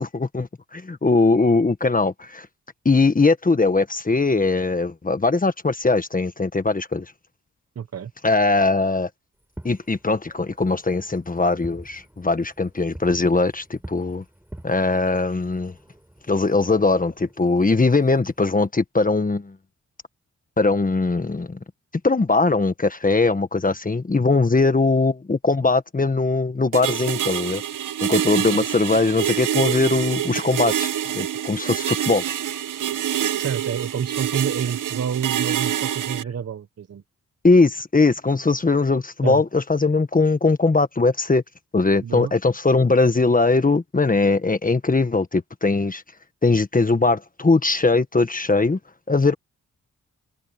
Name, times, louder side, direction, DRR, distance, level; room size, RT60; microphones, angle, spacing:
voice 1, 0.0-2.5 2.8-7.0 8.2-9.1 9.6-14.2 14.6-15.7 16.3-19.5 20.6-21.6 22.0-27.6 28.0-32.2 37.4-41.4 41.7-46.0 46.4-48.8 49.1-49.3, left 3 dB, 25° left, 1.5 m, -20 dB
voice 2, 7.8-8.1 28.4-28.5 33.3-37.0 39.2-39.4 42.0-42.3, right 7 dB, 50° right, 1.0 m, -28 dB
Fireworks, 9.4-18.7, right 1 dB, 5° right, 4.3 m, -46 dB
sound 1, 26.7-36.2, right 10 dB, 75° right, 1.1 m, -26 dB
cardioid pair, 70°, 32 cm